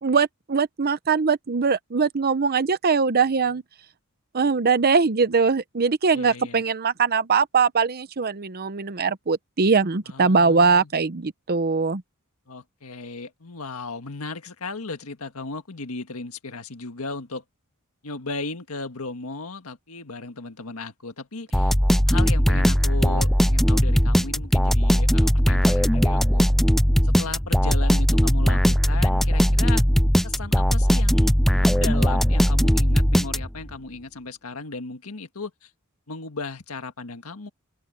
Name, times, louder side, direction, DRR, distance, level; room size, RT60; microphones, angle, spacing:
voice 1, 0.0-3.6 4.3-12.0, right 5 dB, 45° right, 0.8 m, -21 dB
voice 2, 6.1-6.6 10.1-10.9 12.5-17.4 18.0-21.7 22.1-26.5 27.0-29.8 30.2-35.7 36.1-37.5, left 3 dB, 80° left, 1.7 m, -36 dB
sound 1, 21.5-33.7, equal, ahead, 0.4 m, -19 dB
open air
head